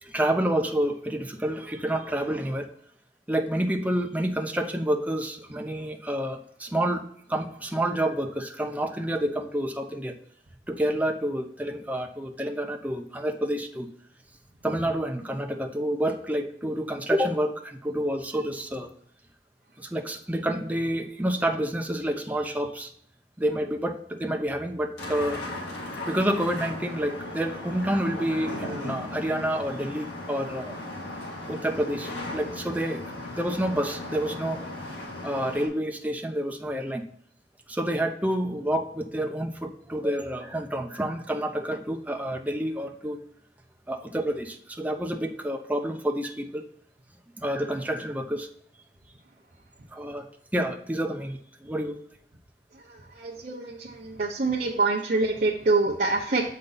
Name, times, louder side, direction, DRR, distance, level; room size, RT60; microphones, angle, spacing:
voice 1, 0.0-2.7 3.3-7.0 7.3-10.1 10.7-13.9 14.6-18.9 19.8-22.9 23.4-25.4 26.1-30.8 31.5-34.6 35.2-37.0 37.7-43.2 43.9-46.6 47.4-48.5 49.9-50.3 50.5-52.0, right 1 dB, 10° right, 4 dB, 0.7 m, -28 dB
sound 1, 25.0-35.7, left 2 dB, 70° left, 2.1 m, -37 dB
voice 2, 53.2-56.4, right 3 dB, 50° right, -3 dB, 0.8 m, -25 dB
6.8 x 5.3 x 4.0 m, 0.64 s
head